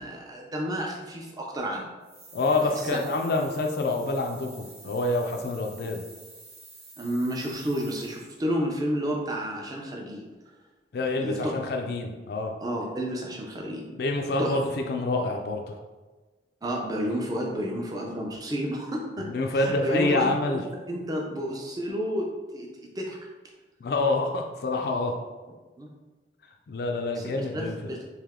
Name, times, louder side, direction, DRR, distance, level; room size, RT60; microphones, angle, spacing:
voice 1, 0.0-1.9 2.6-2.9 7.0-10.2 11.2-11.5 12.6-13.8 14.4-14.6 16.6-19.3 19.5-22.3 22.5-22.7 23.0-23.2 25.8-25.9 27.2-28.0, equal, 20° right, -1 dB, 0.5 m, -31 dB
sound 1, 2.0-8.4, right 3 dB, 65° right, 1.2 m, -49 dB
voice 2, 2.3-6.0 10.9-12.5 14.0-15.7 19.2-20.6 23.8-25.2 26.7-27.8, left 2 dB, 60° left, 3 dB, 0.4 m, -27 dB
3.3 x 2.7 x 3.6 m, 1.2 s
head